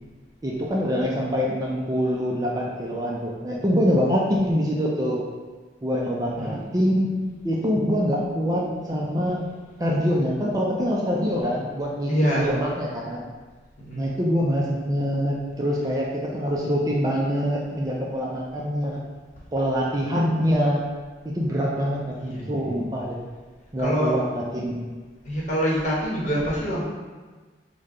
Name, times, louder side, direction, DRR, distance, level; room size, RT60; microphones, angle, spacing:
voice 1, 0.4-5.2 5.8-7.1 7.4-9.4 9.8-12.1 12.4-13.3 13.9-19.0 19.5-20.8 21.2-23.2 23.7-24.8, equal, 20° right, -3 dB, 0.4 m, -24 dB
voice 2, 12.1-12.5 13.8-14.0 22.2-22.7 23.8-24.2 25.2-26.8, equal, 40° left, -5 dB, 0.9 m, -25 dB
4.9 x 2.2 x 3.7 m, 1.4 s
head